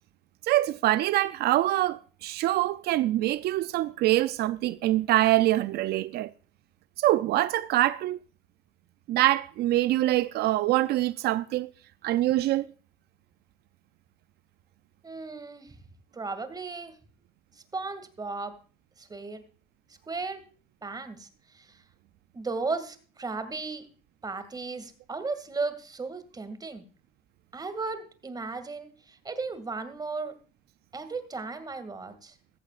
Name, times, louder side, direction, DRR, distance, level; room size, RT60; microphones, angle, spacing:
voice 1, 0.4-6.3 7.0-8.2 9.1-11.7 12.0-12.7, right 15 dB, 70° right, 0.4 m, -24 dB
voice 2, 15.0-15.8 16.1-16.9 17.6-18.6 19.0-19.4 20.1-20.4 20.8-21.8 22.3-23.9 24.2-26.8 27.5-30.3 30.9-32.4, right 4 dB, 25° right, 2.2 m, -35 dB
15.0 x 14.5 x 2.4 m
cardioid pair, 110°, 17 cm